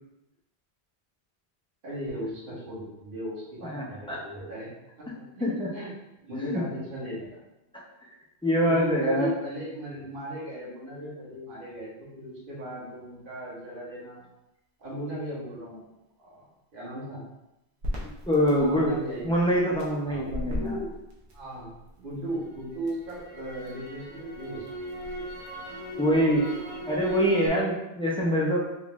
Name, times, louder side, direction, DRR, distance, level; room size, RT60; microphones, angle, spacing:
voice 1, 1.8-4.7 5.0-5.9 6.2-7.4 8.6-14.2 14.8-15.8 16.2-17.2 18.5-20.9 21.3-21.7 22.0-24.7 25.1-25.2, right 1 dB, 55° right, -7 dB, 1.3 m, -37 dB
voice 2, 3.6-4.2 5.4-5.7 6.3-6.6 8.4-9.3 18.3-18.9 19.2-20.8 26.0-26.5 26.9-28.6, equal, 10° left, -4 dB, 0.4 m, -24 dB
Crackle, 17.8-21.9 22.3-27.5, right 1 dB, 85° right, 1.1 m, -37 dB
3.7 x 2.4 x 3.0 m, 0.91 s
omnidirectional pair, 1.1 m